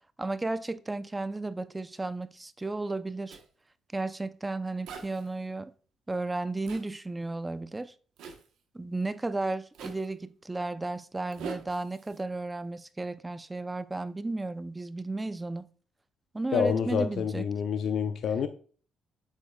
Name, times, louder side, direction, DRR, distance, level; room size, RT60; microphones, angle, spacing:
voice 1, 0.2-3.4 3.9-5.7 6.1-7.9 8.7-15.7 16.3-17.5, right 2 dB, 15° right, 0.5 m, -34 dB
Zipper (clothing), 3.3-3.5 4.9-5.3 6.7-6.9 8.2-8.5 9.7-10.1 11.3-12.2, right 5 dB, 85° right, 1.1 m, -42 dB
voice 2, 16.5-18.5, left 7 dB, 70° left, 0.7 m, -28 dB
7.9 x 7.2 x 2.3 m
cardioid pair, 90°, 0 cm